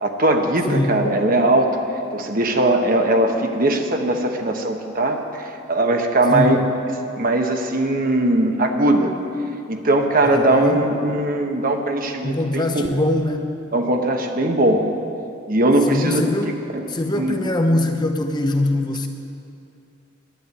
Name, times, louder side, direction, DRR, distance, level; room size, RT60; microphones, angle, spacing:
voice 1, 0.0-1.8 2.1-6.6 7.2-9.1 9.7-12.8 13.7-14.8 15.5-16.2 16.7-16.8 17.1-17.3, right 1 dB, 45° right, 3 dB, 1.3 m, -19 dB
voice 2, 0.7-1.0 6.3-6.7 10.2-10.8 12.2-13.5 15.9-16.6 16.9-19.1, left 1 dB, 20° left, 5 dB, 0.7 m, -22 dB
11.5 x 9.6 x 9.6 m, 2.6 s
head